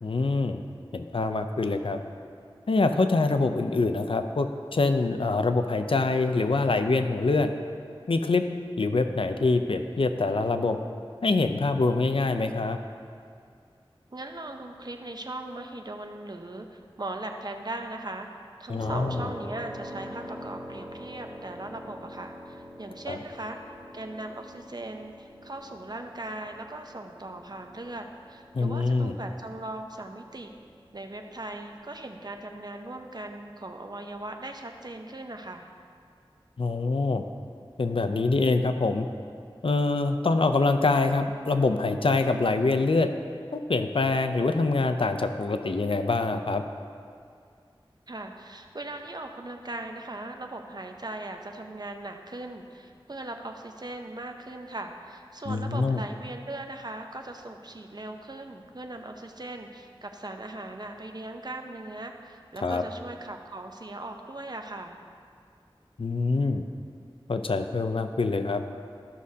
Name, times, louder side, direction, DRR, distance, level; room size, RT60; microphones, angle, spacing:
voice 1, 0.0-0.6 0.9-2.0 2.7-7.5 8.1-8.4 8.8-10.8 11.2-12.8 18.7-19.3 23.1-23.2 28.5-29.2 36.6-37.2 37.8-39.1 39.6-43.1 43.5-46.6 55.5-56.0 62.6-62.8 66.0-66.6 67.3-68.6, left 3 dB, 70° left, 8 dB, 0.5 m, -25 dB
voice 2, 14.1-18.3 18.6-23.6 23.9-30.5 30.9-35.7 48.1-65.0, right 2 dB, 45° right, 4 dB, 0.7 m, -39 dB
sound 1, 18.8-32.5, equal, 20° left, 2.0 m, -45 dB
13.5 x 6.3 x 2.8 m, 2.3 s
wide cardioid pair, 45°, 9 cm